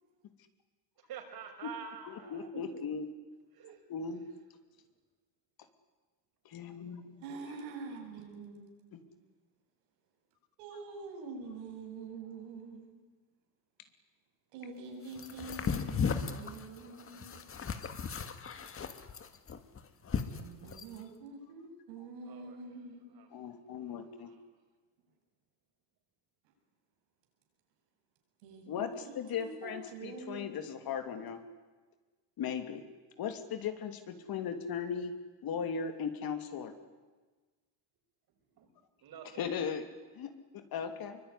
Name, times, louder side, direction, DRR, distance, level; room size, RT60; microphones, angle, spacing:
voice 1, 1.0-2.5 3.5-3.8 22.2-22.6 23.1-23.3 23.8-24.4 38.6-38.7 39.0-39.5, right 7 dB, 50° right, 4 dB, 6.3 m, -48 dB
voice 2, 2.0-3.1 3.9-4.2 6.4-7.2 8.9-9.0 10.7-10.8 23.3-24.3 28.7-31.4 32.4-32.8 33.2-35.1 35.4-36.7 39.4-39.9 40.1-41.2, left 7 dB, 50° left, 8 dB, 3.0 m, -38 dB
voice 3, 7.2-8.7 9.0-9.1 10.6-12.9 14.5-17.5 20.3-23.2 28.4-30.5, right 4 dB, 85° right, 3 dB, 7.8 m, -46 dB
sound 1, 15.2-21.0, left 6 dB, 30° left, 2.0 m, -36 dB
24.0 x 23.5 x 10.0 m, 1.3 s
cardioid pair, 125°, 47 cm